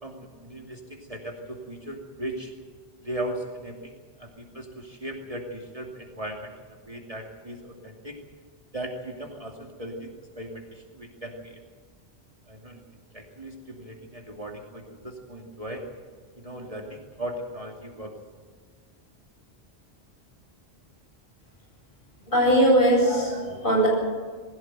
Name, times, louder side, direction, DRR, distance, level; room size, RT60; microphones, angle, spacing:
voice 1, 0.0-2.5 3.0-3.9 4.2-6.5 6.9-8.2 8.7-10.1 10.4-11.6 12.5-12.8 13.1-15.9 16.4-18.2, right 1 dB, 35° right, 1 dB, 2.7 m, -37 dB
voice 2, 22.3-23.9, right 1 dB, 50° left, -2 dB, 8.4 m, -20 dB
21.0 x 16.5 x 9.1 m, 1.5 s
omnidirectional pair, 1.1 m